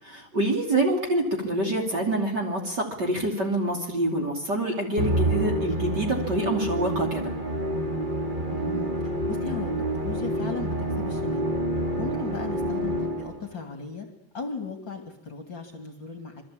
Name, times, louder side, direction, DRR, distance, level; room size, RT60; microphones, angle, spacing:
voice 1, 0.0-7.3, right 1 dB, 30° right, 2 dB, 3.3 m, -26 dB
Musical instrument, 5.0-13.5, right 1 dB, 15° right, 2.1 m, -28 dB
voice 2, 8.5-11.4 12.0-14.1 14.3-16.4, left 5 dB, 35° left, 5 dB, 2.9 m, -37 dB
26.5 x 22.5 x 8.7 m, 0.81 s
omnidirectional pair, 3.9 m